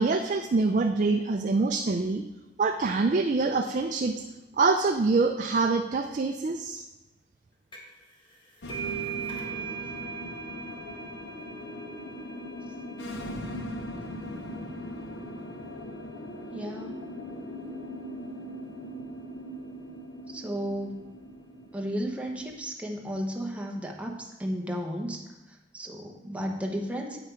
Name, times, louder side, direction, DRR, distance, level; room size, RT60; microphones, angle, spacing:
voice 1, 0.0-2.2 2.6-4.2 4.6-6.8, right 3 dB, 45° right, 4 dB, 0.4 m, -25 dB
sound 1, 7.7-8.0 8.3-15.6, right 8 dB, 25° left, 1.3 m, -40 dB
sound 2, 8.6-22.6, left 1 dB, 75° left, 0.8 m, -40 dB
voice 2, 14.0-14.5 16.5-17.0 20.3-21.1 21.7-27.2, equal, 5° right, 1 dB, 0.8 m, -34 dB
7.9 x 5.8 x 4.5 m, 1.0 s
head